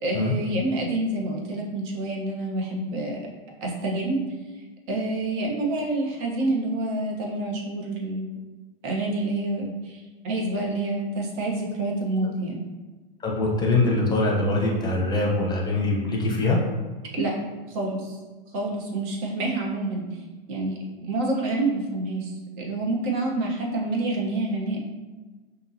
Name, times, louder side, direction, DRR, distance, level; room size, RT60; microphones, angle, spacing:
voice 1, 0.0-3.2 3.6-4.2 4.9-8.3 8.8-12.6 17.1-17.3 17.7-18.2 18.5-20.0 20.5-24.8, right 2 dB, 45° right, -1 dB, 1.2 m, -27 dB
voice 2, 13.2-16.6, left 2 dB, 15° left, -2 dB, 1.0 m, -23 dB
5.6 x 2.7 x 2.8 m, 1.3 s
hypercardioid pair, 115°, 30 cm